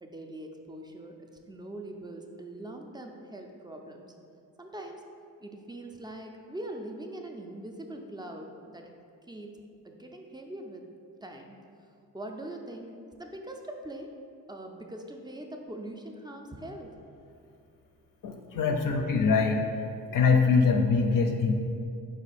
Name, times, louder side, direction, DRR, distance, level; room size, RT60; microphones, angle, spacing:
voice 1, 0.0-4.1 4.6-5.0 5.4-8.9 9.3-9.6 9.8-10.8 11.2-11.6 12.1-12.9 13.2-14.1 14.5-17.0, right 1 dB, 10° right, 3 dB, 0.4 m, -42 dB
voice 2, 18.2-19.6 20.1-21.5, left 5 dB, 55° left, 3 dB, 0.5 m, -23 dB
4.4 x 2.4 x 4.2 m, 2.5 s
supercardioid pair, 50°, 41 cm